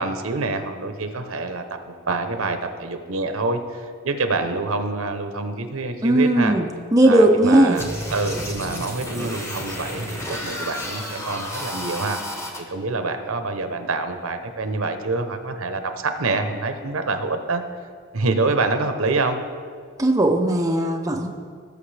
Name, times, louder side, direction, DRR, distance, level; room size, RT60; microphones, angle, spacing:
voice 1, 0.0-6.5 7.0-12.2 12.6-17.6 18.1-19.4, right 3 dB, 70° right, 7 dB, 0.9 m, -26 dB
voice 2, 6.0-7.8 20.0-21.3, right 1 dB, 15° right, 2 dB, 0.5 m, -17 dB
sound 1, 7.7-12.6, equal, 15° left, 1.0 m, -31 dB
18.5 x 6.6 x 3.4 m, 2.1 s
head